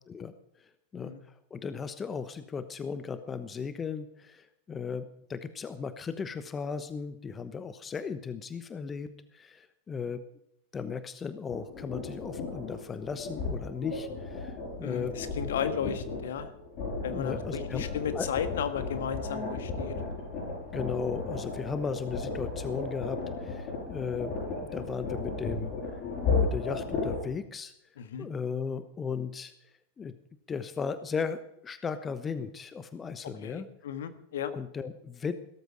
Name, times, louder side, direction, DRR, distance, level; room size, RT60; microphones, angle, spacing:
voice 1, 1.5-10.2 10.7-15.1 17.1-17.8 18.1-18.3 20.7-25.7 26.3-27.7 28.2-29.5 30.0-30.1 30.5-33.7 34.5-35.3, left 5 dB, 20° left, 12 dB, 1.0 m, -36 dB
sound 1, 11.5-27.2, left 4 dB, 40° left, 7.7 m, -34 dB
voice 2, 14.8-16.5 17.0-19.9 28.0-28.3 33.4-34.5, left 8 dB, 60° left, 10 dB, 1.5 m, -34 dB
16.5 x 13.5 x 4.8 m, 0.76 s
figure-of-eight pair, 90°, 0 cm